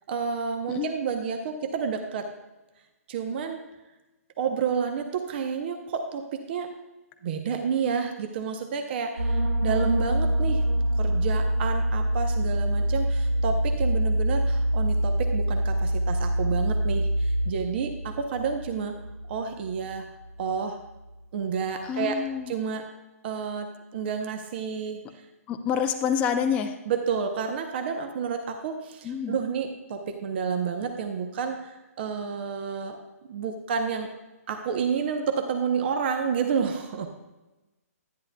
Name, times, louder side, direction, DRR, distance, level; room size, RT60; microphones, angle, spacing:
voice 1, 0.1-2.3 3.1-3.6 4.4-6.7 7.2-10.6 11.0-18.9 19.3-20.0 20.4-20.8 21.3-22.2 22.5-22.9 23.2-25.0 26.9-33.0 33.3-34.1 34.5-37.1, right 6 dB, 45° right, 5 dB, 0.8 m, -30 dB
sound 1, 9.2-20.6 20.8-21.1, right 1 dB, 75° right, 1.3 m, -25 dB
voice 2, 21.9-22.5 25.5-26.7 29.0-29.4, left 8 dB, 15° left, 5 dB, 0.4 m, -27 dB
10.5 x 10.5 x 2.3 m, 1.1 s
hypercardioid pair, 155°, 8 cm